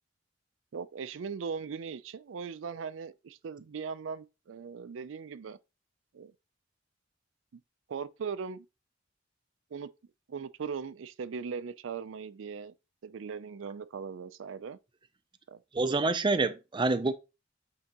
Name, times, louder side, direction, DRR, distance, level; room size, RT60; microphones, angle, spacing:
voice 1, 0.7-5.6 6.1-6.3 7.5-7.6 7.9-8.7 9.7-9.9 10.3-12.7 13.0-14.8 15.5-15.6, right 6 dB, 85° right, 0.4 m, -39 dB
voice 2, 15.7-17.1, right 3 dB, 25° right, 0.5 m, -27 dB
8.7 x 3.7 x 2.9 m
head